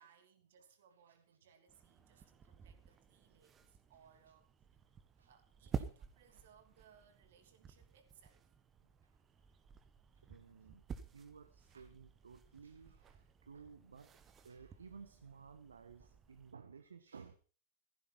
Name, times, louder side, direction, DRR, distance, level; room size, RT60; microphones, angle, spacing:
voice 1, 0.0-4.5 5.3-8.4, right 8 dB, 55° right, 2.9 m, -67 dB
sound 1, 1.7-16.5, right 7 dB, 20° right, 1.3 m, -51 dB
voice 2, 10.1-10.8 11.1-17.4, right 5 dB, 70° right, 1.0 m, -57 dB
15.5 x 14.5 x 4.4 m
figure-of-eight pair, 95°, 0 cm